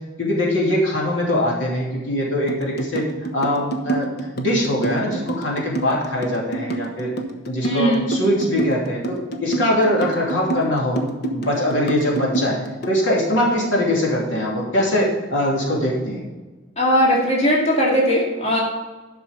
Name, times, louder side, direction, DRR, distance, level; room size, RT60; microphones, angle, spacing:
voice 1, 0.2-7.1 7.4-11.0 11.3-16.2, left 1 dB, 80° left, -3 dB, 2.9 m, -22 dB
sound 1, 2.5-13.0, right 2 dB, 60° left, 1.1 m, -27 dB
voice 2, 7.6-8.0 16.8-18.6, equal, 35° left, -4 dB, 2.5 m, -19 dB
11.5 x 6.1 x 5.3 m, 1.2 s
head